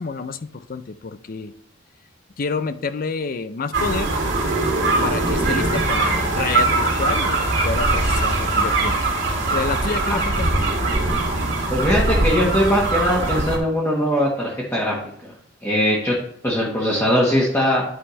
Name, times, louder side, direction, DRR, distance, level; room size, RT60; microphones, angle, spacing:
voice 1, 0.0-1.5 2.4-4.1 5.0-9.0 9.5-10.5, left 4 dB, 45° left, 12 dB, 0.5 m, -28 dB
sound 1, 3.7-13.6, right 2 dB, 65° right, 2.3 m, -21 dB
voice 2, 11.7-14.9 15.2-15.3 15.6-16.1 16.4-17.8, equal, 15° left, -5 dB, 1.4 m, -20 dB
9.7 x 5.5 x 3.2 m, 0.68 s
head